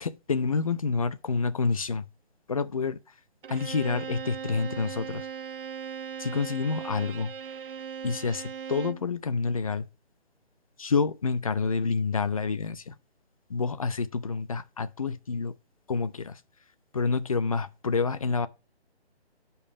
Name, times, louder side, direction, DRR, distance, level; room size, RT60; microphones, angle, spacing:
voice 1, 0.0-2.0 2.5-3.0 3.5-5.3 6.2-7.3 8.0-9.9 10.8-12.9 13.5-15.5 15.9-16.4 16.9-18.5, left 4 dB, 30° left, 0.6 m, -28 dB
Bowed string instrument, 3.4-9.1, right 7 dB, 55° right, 0.5 m, -38 dB
10.5 x 5.5 x 5.0 m
figure-of-eight pair, 155°, 33 cm